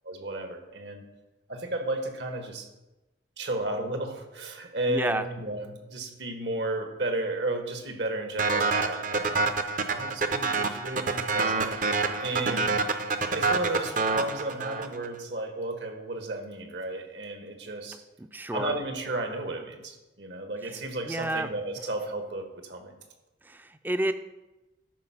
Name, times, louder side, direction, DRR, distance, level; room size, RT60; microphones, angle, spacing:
voice 1, 0.0-1.0 1.5-2.7 3.4-9.5 9.8-12.7 13.3-18.0 18.5-22.9, right 2 dB, 70° right, 5 dB, 1.5 m, -33 dB
voice 2, 4.9-5.3 12.4-12.6 18.2-18.7 21.1-21.5 23.4-24.1, right 1 dB, 10° right, 11 dB, 0.4 m, -30 dB
sound 1, 8.4-15.1, right 3 dB, 45° right, 0.7 m, -27 dB
13.0 x 5.2 x 5.8 m, 1.0 s
head